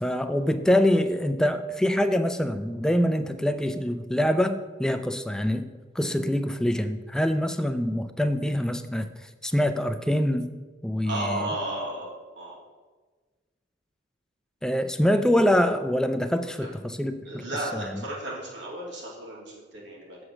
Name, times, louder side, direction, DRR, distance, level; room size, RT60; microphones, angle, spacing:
voice 1, 0.0-5.7 6.0-9.1 9.4-10.5 10.8-11.5 14.6-17.5 17.7-18.0, equal, 5° left, 9 dB, 0.4 m, -25 dB
voice 2, 11.0-12.1 12.3-12.6 17.2-20.2, right 1 dB, 85° right, -4 dB, 2.5 m, -33 dB
7.2 x 4.9 x 6.3 m, 1.3 s
head